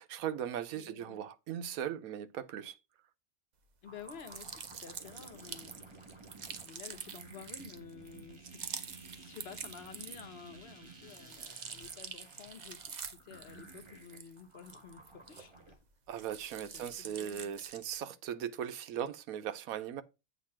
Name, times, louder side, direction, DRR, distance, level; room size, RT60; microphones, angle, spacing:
voice 1, 0.0-2.8 16.1-20.0, right 9 dB, 85° right, 1.1 m, -38 dB
voice 2, 0.7-1.2 3.8-5.8 6.6-15.7 16.1-16.3 16.7-17.5, left 7 dB, 50° left, 1.1 m, -52 dB
sound 1, 3.8-15.8, right 3 dB, 20° right, 1.2 m, -55 dB
sound 2, 4.0-10.5 10.8-15.7 16.1-18.0, right 6 dB, 45° right, 0.6 m, -46 dB
8.1 x 2.8 x 5.7 m
omnidirectional pair, 1.4 m